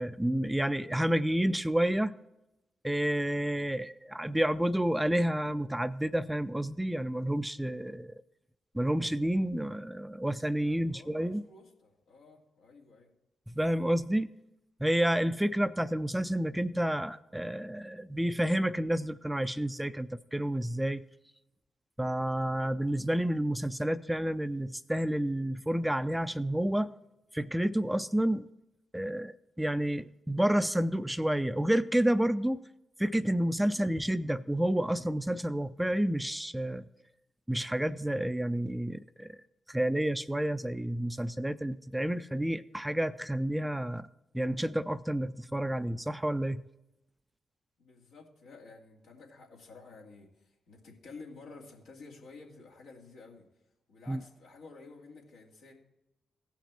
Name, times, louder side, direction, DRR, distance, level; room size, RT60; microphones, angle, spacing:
voice 1, 0.0-2.1 2.8-8.2 8.7-11.4 13.5-14.3 14.8-21.0 22.0-26.9 27.3-28.5 28.9-32.6 33.0-36.8 37.5-39.4 39.7-44.1 44.3-46.6 54.1-54.2, right 1 dB, 10° right, 14 dB, 0.5 m, -30 dB
voice 2, 10.6-13.1 47.8-53.5 53.9-55.7, left 3 dB, 85° left, -2 dB, 2.2 m, -52 dB
16.0 x 5.9 x 4.3 m, 0.91 s
supercardioid pair, 45°, 0 cm